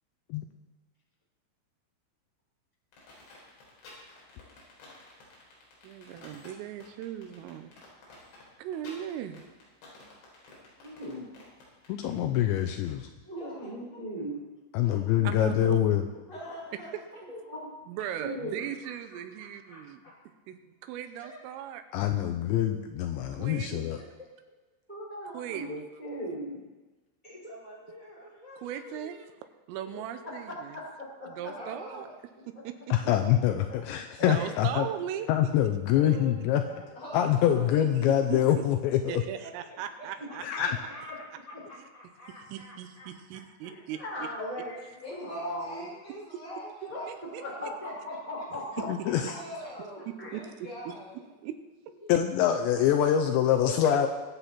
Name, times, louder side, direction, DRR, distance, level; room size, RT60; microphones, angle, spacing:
sound 1, 2.9-12.9, left 3 dB, 65° left, 6.4 m, -52 dB
voice 1, 5.8-7.7 8.6-9.4 15.3-15.8 17.9-20.0 20.5-21.8 23.3-23.8 25.3-25.9 28.6-29.2 29.7-30.8 31.3-32.1 32.7-32.8 34.2-35.3 38.3-38.4 39.1-40.6 42.5-44.3 47.1-47.4 49.2-49.3 50.1-50.4 50.9-51.0 51.4-51.6, right 10 dB, 90° right, 9 dB, 3.5 m, -38 dB
voice 2, 10.8-11.3 13.2-14.4 17.3-17.7 18.2-18.6 24.9-26.6 30.5-31.5 43.7-45.8 46.9-47.0 47.4-48.9 50.0-50.3 53.6-53.7, equal, 10° right, -4 dB, 2.7 m, -38 dB
voice 3, 11.9-13.1 14.7-16.1 21.9-24.0 32.9-34.9 35.3-36.6 37.1-39.2 40.4-40.8 48.9-49.3 52.1-54.1, left 10 dB, 85° left, 5 dB, 2.6 m, -25 dB
voice 4, 13.3-14.0 14.7-15.0 16.3-16.9 31.5-32.1 36.9-37.8 45.0-47.6 49.3-51.2, equal, 35° left, -7 dB, 6.5 m, -43 dB
voice 5, 18.8-20.1 21.2-21.4 23.9-24.0 27.2-29.2 29.8-30.3 35.9-36.9 37.4-37.9 39.4-44.1 47.6-48.5 49.0-49.1 49.6-49.7 52.0-52.1, left 1 dB, 5° left, -6 dB, 4.2 m, -48 dB
23.5 x 8.1 x 4.3 m, 1.2 s
omnidirectional pair, 5.8 m